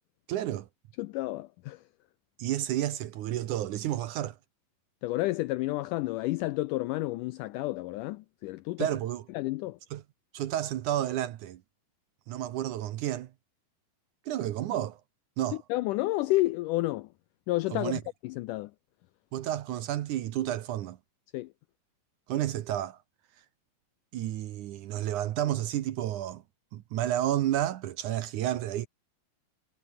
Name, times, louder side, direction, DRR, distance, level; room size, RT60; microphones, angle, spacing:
voice 1, 0.3-0.7 2.4-4.4 8.8-9.2 9.9-10.0 10.3-11.6 12.3-13.3 14.3-15.0 15.4-15.6 17.7-18.0 19.3-21.0 22.3-23.0 24.1-26.4 26.7-28.9, right 12 dB, 70° right, 2.2 m, -31 dB
voice 2, 1.0-1.8 5.0-8.9 9.3-9.8 15.7-17.1 17.5-18.7 21.3-21.5, left 18 dB, 85° left, 1.8 m, -30 dB
omnidirectional pair, 4.3 m